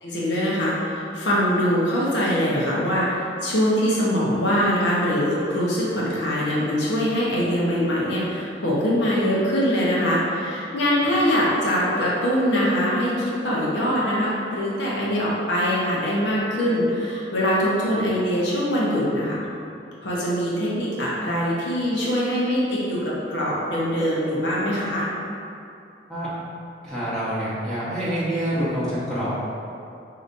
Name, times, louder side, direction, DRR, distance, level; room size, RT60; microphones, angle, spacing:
voice 1, 0.0-19.4 20.0-25.1, equal, 85° left, -7 dB, 0.9 m, -23 dB
voice 2, 26.8-29.3, equal, 5° left, -12 dB, 0.8 m, -26 dB
4.9 x 2.8 x 2.6 m, 2.7 s
head